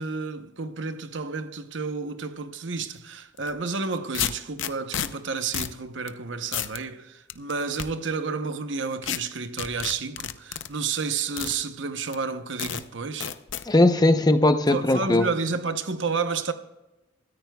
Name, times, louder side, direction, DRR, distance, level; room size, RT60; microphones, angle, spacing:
voice 1, 0.0-13.3 14.7-16.5, right 4 dB, 75° right, 0.9 m, -31 dB
sound 1, 3.4-3.5 4.1-5.1 5.5-5.8 6.1-6.2 6.5-6.8 7.3-7.9 9.0-9.2 9.6-10.7 11.4-11.5 12.1-12.2 12.6-12.8 13.2-13.6, left 10 dB, 75° left, 0.6 m, -30 dB
voice 2, 13.7-15.3, left 2 dB, 20° left, 0.7 m, -19 dB
23.0 x 14.0 x 2.3 m
head